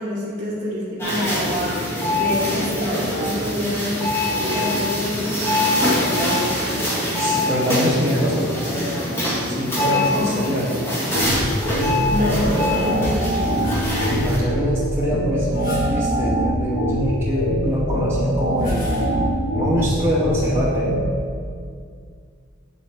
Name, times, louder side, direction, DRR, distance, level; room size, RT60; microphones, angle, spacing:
voice 1, 0.0-1.6 2.1-4.0 4.5-6.6 9.8-10.5 11.9-13.6, left 1 dB, 35° right, -11 dB, 2.0 m, -27 dB
sound 1, 1.0-14.4, left 1 dB, 10° left, 1.5 m, -23 dB
voice 2, 7.1-8.7 9.5-10.8 14.2-19.1 19.5-20.9, equal, 10° right, -6 dB, 0.7 m, -25 dB
sound 2, 11.1-21.1, equal, 65° left, 0.8 m, -23 dB
sound 3, 13.5-14.2 15.5-16.1 18.4-19.4, left 1 dB, 45° left, 1.5 m, -38 dB
7.6 x 7.6 x 3.4 m, 2.2 s
head